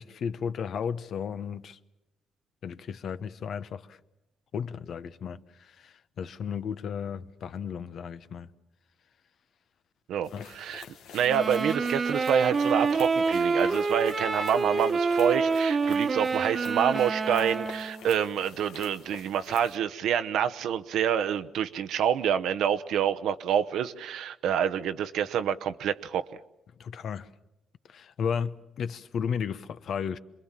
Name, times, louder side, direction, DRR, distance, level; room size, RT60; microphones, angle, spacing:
voice 1, 0.0-1.8 2.6-4.0 4.5-8.5 10.3-10.5 26.8-27.3 27.9-30.2, left 7 dB, 65° left, 1.0 m, -34 dB
voice 2, 10.1-10.8 11.1-26.3, right 8 dB, 80° right, 0.9 m, -27 dB
sound 1, 10.2-19.8, left 7 dB, 85° left, 1.5 m, -47 dB
sound 2, 11.2-18.0, right 4 dB, 40° right, 1.3 m, -27 dB
27.5 x 21.5 x 7.4 m
cardioid pair, 90°, 0 cm